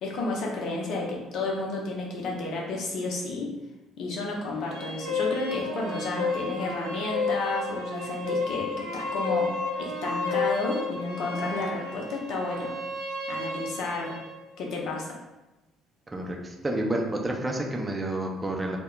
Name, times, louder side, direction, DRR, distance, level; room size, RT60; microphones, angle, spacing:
voice 1, 0.0-3.6 4.0-12.7 13.3-14.2 14.6-15.1, left 3 dB, 60° left, -1 dB, 0.6 m, -31 dB
sound 1, 4.4-14.4, left 3 dB, 75° right, 0.4 m, -32 dB
voice 2, 16.1-18.8, right 1 dB, 20° right, 1 dB, 0.5 m, -29 dB
2.2 x 2.1 x 3.7 m, 1.1 s
figure-of-eight pair, 50°, 0 cm